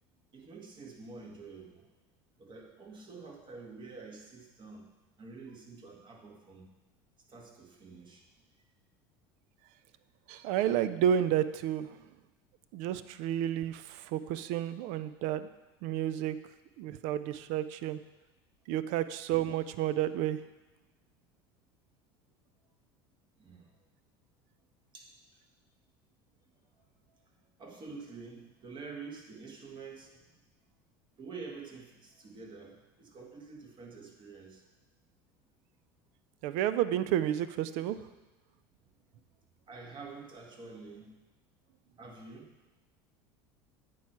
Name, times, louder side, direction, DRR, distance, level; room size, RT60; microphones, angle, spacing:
voice 1, 0.3-1.9 2.4-4.9 5.2-6.7 7.3-8.3 23.4-23.8 24.9-25.2 26.7-27.2 27.6-30.2 31.2-34.6 39.7-41.1 42.0-42.6, right 4 dB, 35° right, 1 dB, 1.6 m, -48 dB
voice 2, 10.3-12.0 12.7-15.5 15.8-16.4 16.8-18.0 18.7-20.4 36.4-38.1, right 11 dB, 65° right, 13 dB, 0.4 m, -31 dB
8.6 x 4.6 x 4.6 m, 1.1 s
hypercardioid pair, 85°, 13 cm